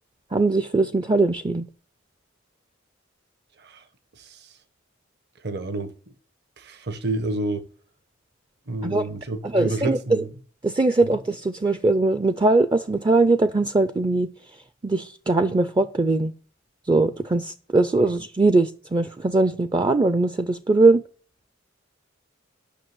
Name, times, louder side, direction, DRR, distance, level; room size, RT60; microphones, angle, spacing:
voice 1, 0.3-1.7 8.8-9.1 9.5-10.2 10.6-14.3 14.8-16.3 16.9-21.0, right 3 dB, 20° right, 0.4 m, -21 dB
voice 2, 4.2-4.5 5.4-5.9 6.6-7.7 8.7-10.3 11.0-11.2 18.0-18.1, right 2 dB, 60° right, 1.1 m, -30 dB
10.0 x 5.9 x 8.1 m
head